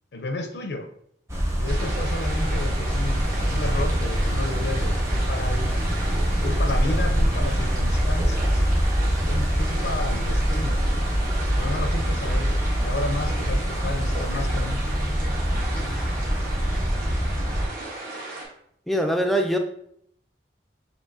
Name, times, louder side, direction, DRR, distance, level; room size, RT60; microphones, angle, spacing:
voice 1, 0.1-0.9 1.6-5.8 6.4-8.7 9.2-10.8 11.6-14.8, left 2 dB, 75° left, 6 dB, 0.5 m, -32 dB
sound 1, 1.3-17.7, equal, 15° right, 0.7 m, -24 dB
sound 2, 1.7-18.4, right 2 dB, 50° right, 1.2 m, -35 dB
voice 2, 15.9-16.2 18.9-19.6, equal, ahead, 3 dB, 0.4 m, -24 dB
6.6 x 2.7 x 2.6 m, 0.69 s
head